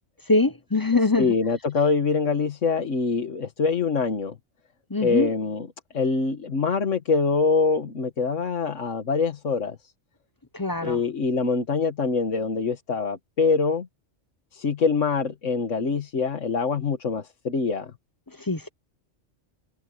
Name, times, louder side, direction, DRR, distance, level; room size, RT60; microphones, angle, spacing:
voice 1, 0.3-1.3 4.9-5.3 10.5-11.0 18.4-18.7, left 3 dB, 20° left, 0.6 m, -23 dB
voice 2, 1.2-4.3 5.0-5.7 5.9-9.8 10.8-13.9 14.5-17.9, left 4 dB, 80° left, 1.9 m, -24 dB
omnidirectional pair, 1.3 m